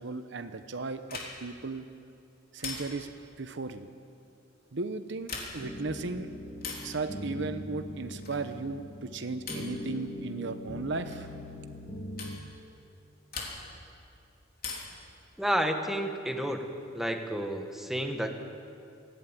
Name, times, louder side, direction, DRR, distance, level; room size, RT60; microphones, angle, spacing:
voice 1, 0.0-1.9 2.5-3.1 3.4-3.9 4.7-6.3 6.8-11.3, right 3 dB, 65° right, 10 dB, 0.9 m, -36 dB
sound 1, 1.1-1.6 2.6-3.2 5.1-5.8 6.6-7.0 8.2-8.6 9.5-9.8 11.1-11.3 12.2-12.4 13.3-13.9 14.6-15.1 16.5-17.2, left 4 dB, 50° left, 3.5 m, -41 dB
sound 2, 5.6-12.4, left 1 dB, 25° left, 1.8 m, -41 dB
voice 2, 15.4-16.7 16.9-18.3, equal, ahead, 4 dB, 1.4 m, -30 dB
19.0 x 15.0 x 9.1 m, 2.5 s
head